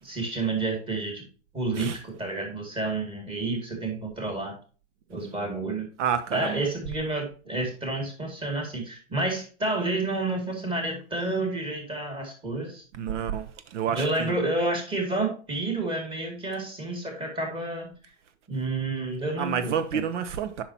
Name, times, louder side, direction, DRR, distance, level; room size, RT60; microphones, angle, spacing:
voice 1, 0.0-1.2 1.5-4.6 5.1-5.9 6.3-12.8 13.9-17.9 18.5-20.1, right 2 dB, 15° right, 2.2 m, -30 dB
voice 2, 6.0-6.6 13.0-13.5 13.7-14.4 19.4-20.6, right 8 dB, 80° right, 0.8 m, -29 dB
8.4 x 5.8 x 2.8 m
hypercardioid pair, 145°, 36 cm